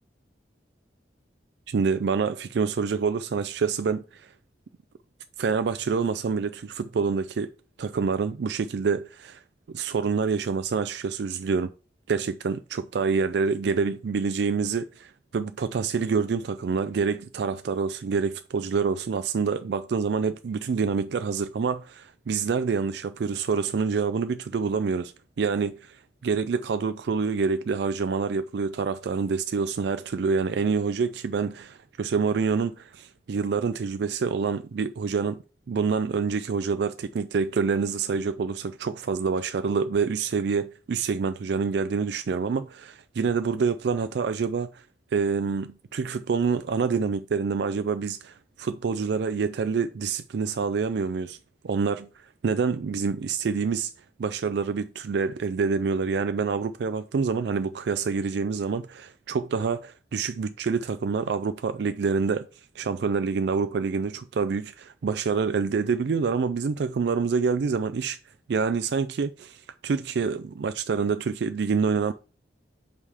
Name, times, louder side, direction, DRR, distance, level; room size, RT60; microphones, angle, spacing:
voice 1, 1.7-4.3 5.4-7.5 7.8-9.4 9.7-11.7 12.1-25.1 25.4-35.4 35.7-44.8 45.1-51.4 51.6-53.9 54.2-62.5 62.8-68.2 68.5-72.1, right 5 dB, 65° right, 0.4 m, -27 dB
5.5 x 4.8 x 4.9 m
head